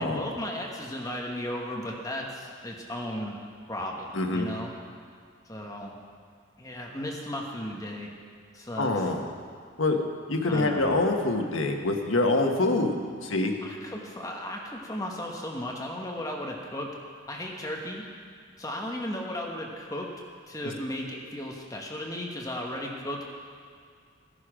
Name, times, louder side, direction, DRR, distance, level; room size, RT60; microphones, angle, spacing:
voice 1, 0.0-3.4 3.7-4.7 5.5-5.9 6.6-8.1 8.5-9.1 10.5-11.0 13.6-16.9 17.3-18.1 18.6-20.1 20.5-23.2, left 1 dB, 15° left, -1 dB, 1.3 m, -35 dB
voice 2, 4.1-4.5 8.8-9.2 9.8-10.0 10.3-13.0 13.2-13.5, left 2 dB, 85° left, 3 dB, 1.4 m, -25 dB
15.0 x 11.0 x 5.0 m, 2.1 s
head